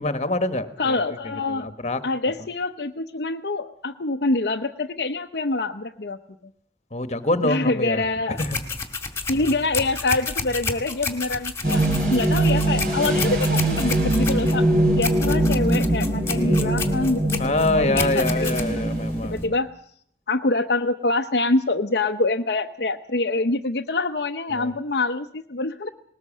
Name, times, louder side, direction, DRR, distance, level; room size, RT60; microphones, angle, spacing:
voice 1, 0.0-1.0 1.5-2.0 6.9-8.1 8.4-8.6 16.2-16.7 17.4-19.4 24.5-24.7, left 2 dB, 35° left, 10 dB, 1.4 m, -25 dB
voice 2, 0.8-1.7 2.0-6.2 7.4-8.4 9.3-18.8 19.2-19.7 20.3-25.9, left 2 dB, 60° left, 4 dB, 0.8 m, -25 dB
sound 1, 8.4-19.5, left 4 dB, 15° left, 2.1 m, -31 dB
sound 2, 11.6-19.5, right 1 dB, 55° right, 5.6 m, -22 dB
20.0 x 19.0 x 7.4 m, 0.64 s
head